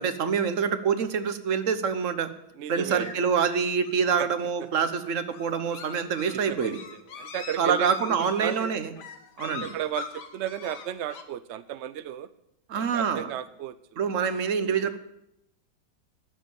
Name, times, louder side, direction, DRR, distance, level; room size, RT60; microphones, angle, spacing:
voice 1, 0.0-2.3 2.7-6.8 7.6-8.9 9.4-9.7 12.7-13.3 14.0-15.0, right 6 dB, 50° right, 11 dB, 1.3 m, -26 dB
voice 2, 2.6-3.1 4.2-4.3 6.3-8.8 9.4-12.3 12.8-14.0 14.6-14.8, right 11 dB, 70° right, 13 dB, 0.6 m, -34 dB
sound 1, 2.9-11.2, left 6 dB, 75° left, 1.7 m, -43 dB
13.5 x 7.4 x 8.7 m, 0.79 s
omnidirectional pair, 1.8 m